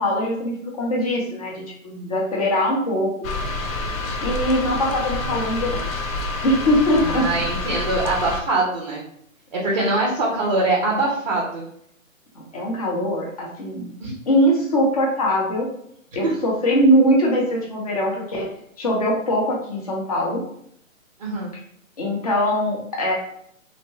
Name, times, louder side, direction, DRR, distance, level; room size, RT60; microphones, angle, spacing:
voice 1, 0.0-3.3 4.2-5.8 6.4-7.2 12.3-13.9 14.3-15.7 16.1-18.5 18.8-20.4 22.0-23.1, equal, 30° left, -2 dB, 0.6 m, -21 dB
sound 1, 3.2-8.4, left 2 dB, 75° left, 0.5 m, -28 dB
voice 2, 7.0-9.0 9.5-11.7 14.0-14.1 16.2-16.3 21.2-21.5, right 2 dB, 35° right, -2 dB, 0.5 m, -23 dB
2.7 x 2.0 x 3.0 m, 0.69 s
hypercardioid pair, 150°, 41 cm